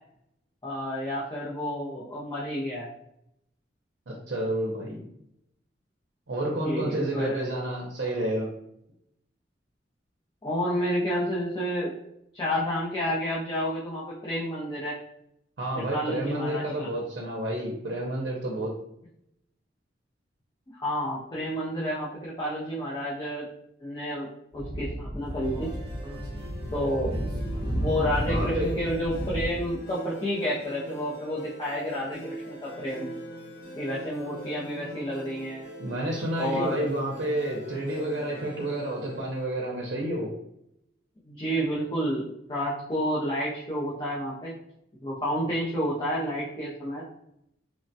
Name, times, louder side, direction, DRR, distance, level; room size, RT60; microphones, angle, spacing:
voice 1, 0.6-2.9 6.5-7.4 10.4-11.9 12.3-15.0 15.8-16.9 20.7-23.5 23.8-24.3 24.5-25.7 26.7-27.1 27.7-33.1 33.8-35.7 36.4-36.9 41.2-44.5 45.0-47.0, equal, 25° left, -7 dB, 0.5 m, -30 dB
voice 2, 4.1-5.1 6.3-8.5 15.6-18.7 28.3-28.7 35.8-40.3, right 1 dB, 70° right, -2 dB, 0.5 m, -30 dB
Speech / Wind, 24.5-29.5, equal, 20° right, 0.6 m, -32 dB
sound 1, 25.4-40.0, equal, 70° left, 0.8 m, -43 dB
3.2 x 2.2 x 2.6 m, 0.78 s
head